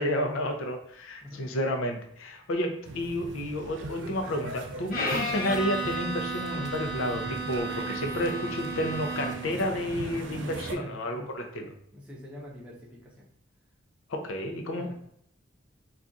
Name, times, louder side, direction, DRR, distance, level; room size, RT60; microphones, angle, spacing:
voice 1, 0.0-11.7 14.1-14.9, equal, 80° left, 3 dB, 0.5 m, -31 dB
voice 2, 1.2-1.5 10.4-11.3 11.9-13.3 14.8-14.9, left 1 dB, 5° right, -6 dB, 0.6 m, -45 dB
sound 1, 2.8-10.8, right 3 dB, 65° right, 0.4 m, -40 dB
Bowed string instrument, 4.9-9.6, right 1 dB, 45° left, 0.8 m, -33 dB
2.4 x 2.4 x 3.9 m, 0.71 s
head